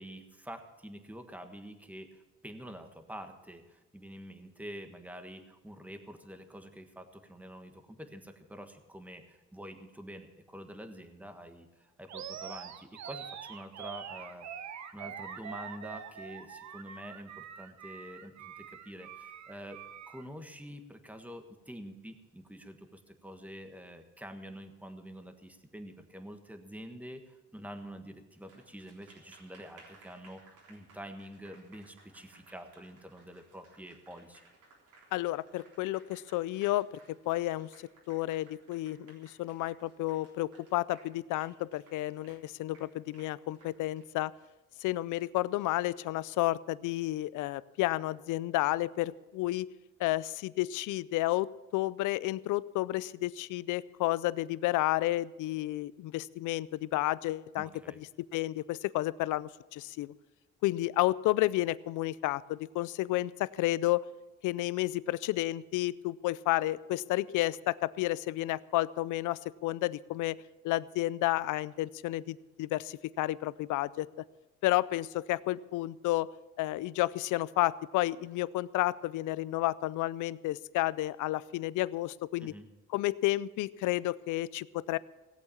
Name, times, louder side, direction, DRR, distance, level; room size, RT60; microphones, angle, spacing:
voice 1, 0.0-14.5 14.9-34.5 57.6-58.0 82.4-82.7, equal, 5° right, 7 dB, 1.5 m, -47 dB
Animal, 12.1-20.3, right 8 dB, 65° right, 1.1 m, -44 dB
Applause, 28.3-46.1, right 3 dB, 85° right, 3.8 m, -61 dB
voice 2, 35.1-36.9 37.3-37.7 38.1-44.3 44.8-49.7 50.0-57.7 58.0-60.1 60.6-64.0 64.4-74.1 74.6-76.3 76.6-82.5 82.9-85.0, left 17 dB, 85° left, 20 dB, 0.5 m, -31 dB
17.5 x 8.2 x 7.1 m, 1.1 s
cardioid pair, 90°, 30 cm